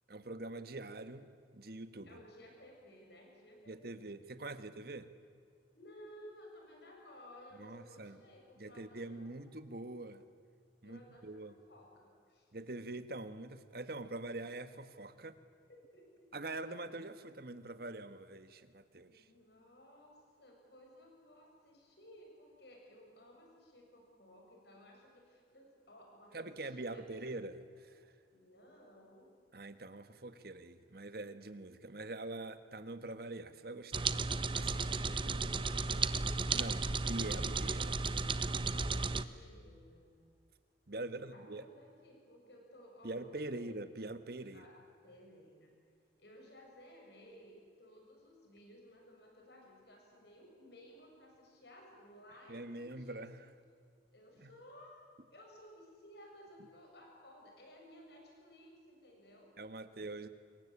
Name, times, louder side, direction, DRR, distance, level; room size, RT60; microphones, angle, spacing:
voice 1, 0.1-2.2 3.7-5.1 7.6-8.2 8.6-10.3 10.8-11.5 12.5-15.3 16.3-19.3 26.3-28.1 29.5-34.1 34.5-34.9 36.5-38.0 40.9-41.6 43.0-44.7 52.5-53.4 54.4-54.5 59.6-60.3, right 2 dB, 55° right, 11 dB, 1.4 m, -44 dB
voice 2, 2.0-4.0 5.7-9.4 10.8-11.4 11.7-12.5 15.7-16.3 19.1-27.2 28.3-29.3 34.6-36.2 38.7-40.1 40.9-43.7 44.5-44.8 45.0-45.7 46.2-53.3 54.1-55.0 55.3-59.5, equal, 65° left, 1 dB, 7.1 m, -57 dB
sound 1, 33.9-39.2, right 4 dB, 25° right, 0.8 m, -34 dB
26.0 x 22.0 x 8.6 m, 2.2 s
head